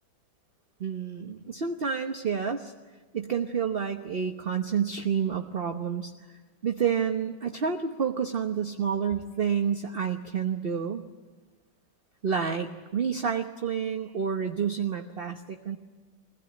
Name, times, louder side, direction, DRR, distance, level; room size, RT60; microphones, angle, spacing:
voice 1, 0.8-2.7 3.1-6.1 6.6-11.0 12.2-15.8, right 7 dB, 40° right, 4 dB, 1.0 m, -29 dB
24.0 x 16.5 x 9.8 m, 1.3 s
omnidirectional pair, 2.2 m